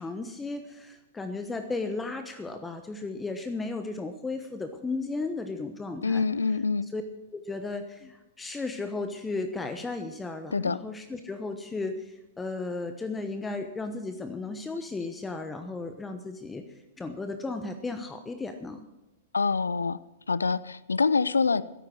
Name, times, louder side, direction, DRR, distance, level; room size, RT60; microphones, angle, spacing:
voice 1, 0.0-6.2 6.9-7.0 7.3-18.9, left 3 dB, 10° left, 7 dB, 1.0 m, -35 dB
voice 2, 6.0-6.9 10.5-10.8 19.3-20.0 20.3-21.6, left 4 dB, 85° left, 18 dB, 0.5 m, -25 dB
13.0 x 11.0 x 6.4 m, 0.96 s
hypercardioid pair, 110°, 0 cm